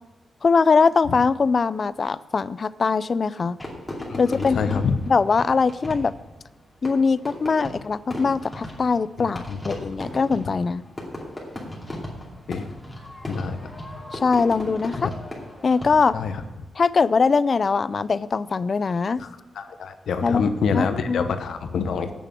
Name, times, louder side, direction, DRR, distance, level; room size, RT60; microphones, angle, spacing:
voice 1, 0.4-3.6 4.2-4.8 5.1-6.1 6.8-10.9 14.1-15.1 15.6-16.2 16.8-19.2 20.2-20.4 20.7-21.3, left 4 dB, 40° left, 17 dB, 0.3 m, -21 dB
Fireworks, 3.6-16.3, left 1 dB, 10° left, 2.5 m, -36 dB
voice 2, 4.1-5.0 9.2-9.6 12.5-12.7 13.3-13.7 15.0-15.1 16.1-16.4 19.2-19.3 19.5-22.1, left 5 dB, 75° left, 8 dB, 0.8 m, -26 dB
8.5 x 6.8 x 8.5 m, 1.1 s
wide cardioid pair, 140°, 0 cm